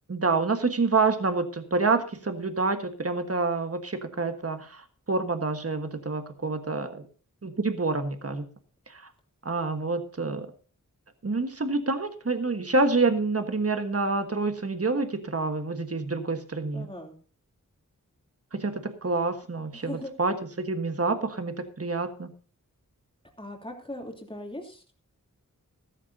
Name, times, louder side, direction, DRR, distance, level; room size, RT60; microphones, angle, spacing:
voice 1, 0.1-7.1 7.4-8.5 8.9-9.1 9.4-10.5 11.2-16.9 18.5-22.3, right 3 dB, 45° right, 8 dB, 1.4 m, -27 dB
voice 2, 16.7-17.2 19.7-20.1 23.4-24.9, left 1 dB, 15° left, 1 dB, 3.1 m, -39 dB
14.0 x 13.5 x 2.8 m, 0.39 s
wide cardioid pair, 60°, 32 cm